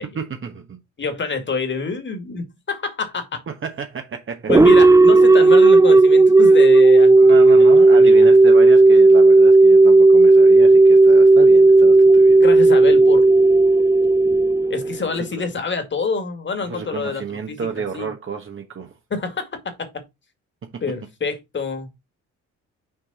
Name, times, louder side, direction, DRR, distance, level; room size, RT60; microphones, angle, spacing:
voice 1, 0.1-0.8 3.5-4.5 4.9-5.0 7.2-12.4 15.0-15.2 16.6-19.0 20.6-20.8, right 6 dB, 40° right, 1.2 m, -31 dB
voice 2, 1.0-3.4 4.5-7.4 7.9-8.1 12.4-13.3 14.7-17.7 17.9-18.1 19.1-20.0 20.8-21.9, left 4 dB, 40° left, 2.2 m, -27 dB
sound 1, 4.5-15.2, right 2 dB, 10° right, 0.4 m, -11 dB
6.4 x 4.7 x 4.1 m
cardioid pair, 90°, 30 cm